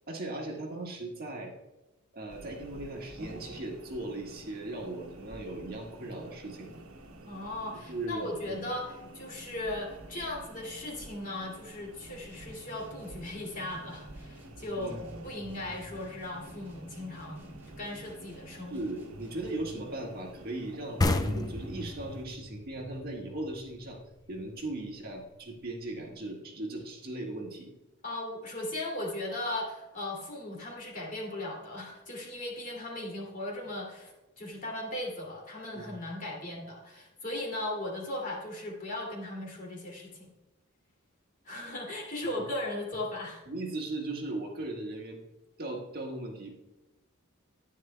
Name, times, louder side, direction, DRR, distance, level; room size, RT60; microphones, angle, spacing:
voice 1, 0.1-1.5 2.1-6.7 7.9-8.7 14.8-15.0 18.7-24.0 24.3-27.7 35.7-36.0 42.4-42.5 43.5-45.2 45.6-46.6, right 2 dB, 45° right, -1 dB, 1.6 m, -38 dB
sound 1, 2.3-22.2, right 1 dB, 80° right, 1.1 m, -50 dB
voice 2, 7.2-15.0 15.2-18.8 28.0-40.3 41.4-43.4, left 1 dB, 40° left, -2 dB, 2.5 m, -37 dB
sound 2, 12.3-19.8, equal, 10° right, 2.2 m, -52 dB
sound 3, 21.0-24.4, left 2 dB, 20° left, 0.4 m, -31 dB
11.0 x 9.9 x 2.2 m, 1.0 s
head